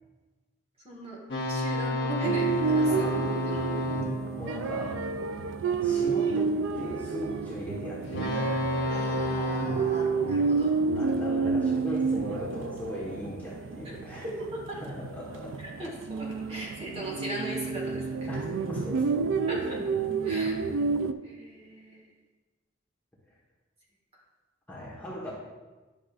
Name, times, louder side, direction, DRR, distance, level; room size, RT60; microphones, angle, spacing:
voice 1, 0.8-1.2 1.5-3.1 3.4-3.8 8.9-10.7 13.8-13.9 14.2-14.8 15.6-18.3 19.5-19.8 20.2-20.9 21.2-22.1, right 1 dB, 30° right, -3 dB, 1.6 m, -38 dB
sound 1, 1.3-5.7 8.0-11.3, left 1 dB, 55° left, 1.1 m, -32 dB
sound 2, 2.2-21.1, right 4 dB, 80° right, 0.4 m, -30 dB
voice 2, 2.9-3.2 4.4-5.1 5.8-8.6 10.9-14.3 14.8-15.6 18.3-18.4 18.7-19.3 19.6-19.9 20.3-20.6 24.7-25.3, equal, 10° left, -6 dB, 1.4 m, -38 dB
10.0 x 6.4 x 2.5 m, 1.2 s
head